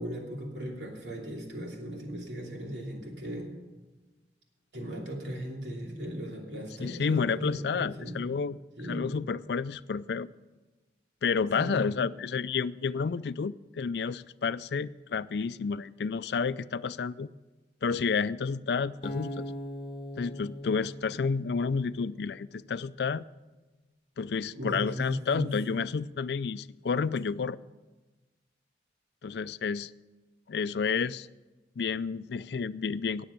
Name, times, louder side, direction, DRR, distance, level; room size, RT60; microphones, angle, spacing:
voice 1, 0.0-3.5 4.7-8.2 8.8-9.1 11.5-11.9 24.5-25.8, equal, 75° right, 0 dB, 2.8 m, -37 dB
voice 2, 6.8-8.6 8.8-10.3 11.2-17.3 17.8-19.5 20.2-23.2 24.2-27.6 29.2-29.9 30.5-31.3 31.8-33.2, left 5 dB, 70° left, 17 dB, 0.4 m, -30 dB
Acoustic guitar, 19.0-22.2, equal, 30° left, 1.1 m, -40 dB
18.5 x 7.1 x 6.6 m, 1.2 s
head